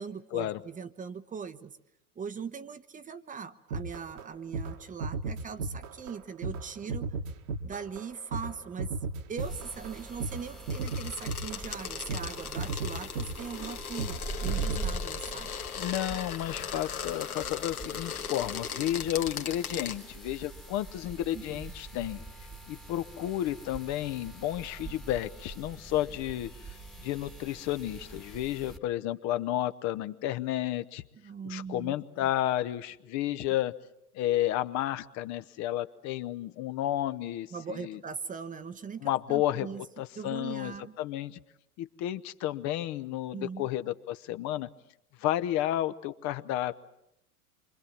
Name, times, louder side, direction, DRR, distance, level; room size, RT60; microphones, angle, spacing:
voice 1, 0.0-1.8 2.2-7.1 7.6-8.9 9.3-15.5 21.3-21.6 31.2-31.9 32.2-32.3 37.5-39.8 40.1-41.0 43.3-43.7, right 6 dB, 20° right, 12 dB, 1.0 m, -40 dB
sound 1, 3.7-4.3 4.5-4.7 5.0-6.2 6.4-14.2 14.4-14.9, right 3 dB, 60° right, 1.9 m, -35 dB
sound 2, 9.4-28.8, right 3 dB, ahead, 1.5 m, -43 dB
sound 3, 10.7-20.0, left 7 dB, 75° left, 1.8 m, -38 dB
voice 2, 15.7-22.2 22.7-26.5 27.0-31.0 31.4-33.7 34.1-38.0 39.0-39.7 40.0-41.4 41.8-44.7 45.2-46.8, left 13 dB, 40° left, 11 dB, 1.0 m, -32 dB
28.0 x 24.5 x 7.3 m, 0.81 s
figure-of-eight pair, 85°, 44 cm